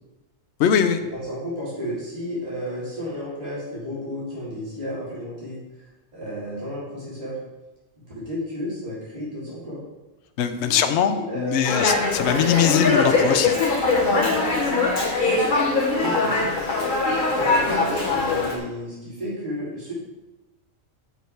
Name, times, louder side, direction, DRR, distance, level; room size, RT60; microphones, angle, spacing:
voice 1, 0.6-1.0 10.4-13.5, left 8 dB, 65° left, 9 dB, 0.9 m, -21 dB
voice 2, 1.1-5.6 6.1-7.4 8.2-9.8 10.6-11.9 15.9-16.6 17.3-19.9, equal, 30° right, -9 dB, 3.2 m, -32 dB
Dog, 11.6-18.6, left 3 dB, 40° left, 1.4 m, -21 dB
8.2 x 6.4 x 4.5 m, 1.0 s
omnidirectional pair, 1.3 m